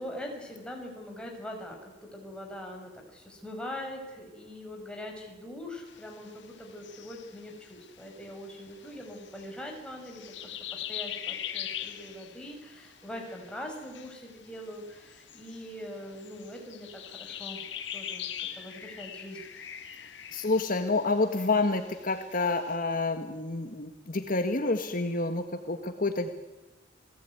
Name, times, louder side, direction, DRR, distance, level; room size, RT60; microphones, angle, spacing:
voice 1, 0.0-17.6 17.9-19.4, left 1 dB, 5° left, 1 dB, 5.7 m, -42 dB
sound 1, 5.9-22.7, left 10 dB, 65° left, 1.8 m, -43 dB
voice 2, 20.3-26.3, left 3 dB, 45° left, 7 dB, 1.5 m, -28 dB
29.5 x 19.0 x 9.6 m, 1.2 s
head